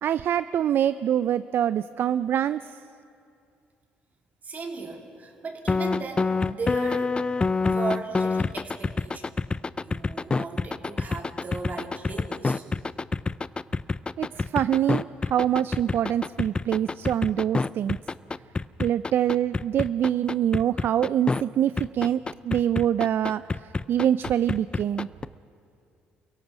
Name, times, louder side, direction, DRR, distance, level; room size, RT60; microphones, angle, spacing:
voice 1, 0.0-2.6 14.2-18.0 18.8-23.4 23.9-25.1, right 10 dB, 60° right, 15 dB, 0.4 m, -25 dB
voice 2, 4.4-7.2 7.6-9.4 9.8-12.6, right 3 dB, 40° right, 2 dB, 3.3 m, -36 dB
sound 1, 5.7-21.4 21.8-25.2, left 4 dB, 25° left, 0.4 m, -27 dB
29.0 x 17.0 x 6.1 m, 2.5 s
supercardioid pair, 75°, 4 cm